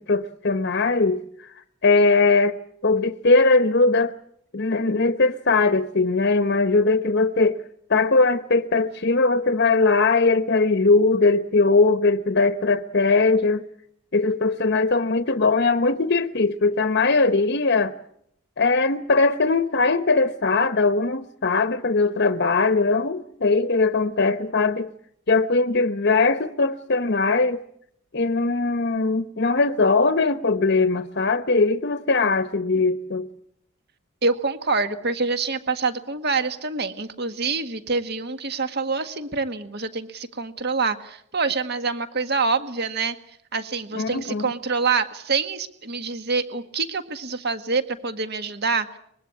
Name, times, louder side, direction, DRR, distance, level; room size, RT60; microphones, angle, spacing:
voice 1, 0.0-1.5 1.8-2.6 2.8-4.1 4.5-7.6 7.9-13.7 14.1-17.9 18.6-24.9 25.3-27.6 28.1-33.3 43.9-44.5, left 3 dB, 50° left, 0.9 m, -20 dB
voice 2, 34.2-43.1 43.5-49.0, right 4 dB, 50° right, 1.7 m, -26 dB
24.0 x 21.5 x 8.5 m
head